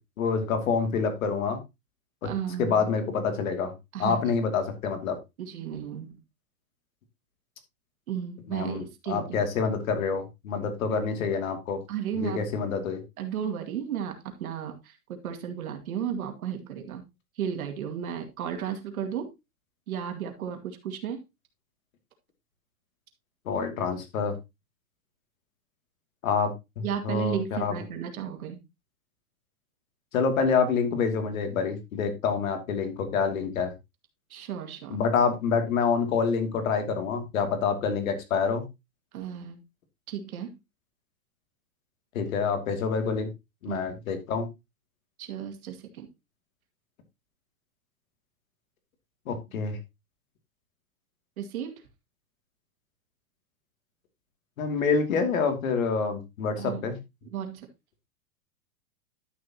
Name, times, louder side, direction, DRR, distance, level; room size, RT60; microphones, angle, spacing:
voice 1, 0.2-1.6 2.6-3.7 4.0-5.2 8.5-11.8 12.1-13.0 23.5-24.4 26.2-27.7 30.1-33.7 34.9-38.6 42.1-43.3 43.6-44.5 49.3-49.8 54.6-57.0, left 5 dB, 60° left, 7 dB, 2.6 m, -27 dB
voice 2, 2.2-2.9 3.9-4.2 5.4-6.2 8.1-9.4 11.9-12.4 13.2-17.0 17.4-19.3 19.9-21.2 26.8-28.6 34.3-35.0 39.1-39.6 40.1-40.5 43.7-43.9 45.2-46.1 51.4-51.8 56.6-56.9 57.3-57.7, right 8 dB, 70° right, 5 dB, 2.3 m, -34 dB
11.5 x 7.1 x 2.9 m, 0.23 s
supercardioid pair, 170°, 45 cm